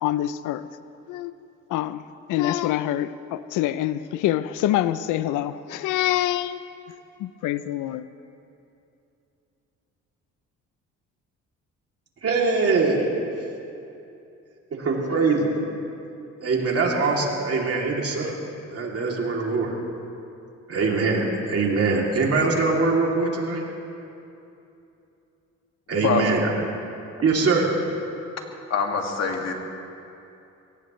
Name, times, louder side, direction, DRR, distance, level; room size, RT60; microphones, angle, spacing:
voice 1, 0.0-0.6 1.1-1.3 1.7-2.0 2.3-6.6 7.2-8.1, left 13 dB, 90° left, 14 dB, 0.5 m, -25 dB
voice 2, 12.2-13.4 14.7-15.6 16.4-18.4 18.7-19.8 20.7-23.6 25.9-26.5 27.2-27.8, right 3 dB, 50° right, -1 dB, 2.9 m, -23 dB
voice 3, 28.7-29.5, left 5 dB, 60° left, 2 dB, 2.1 m, -24 dB
23.0 x 18.0 x 3.2 m, 2.8 s
cardioid pair, 90°, 30 cm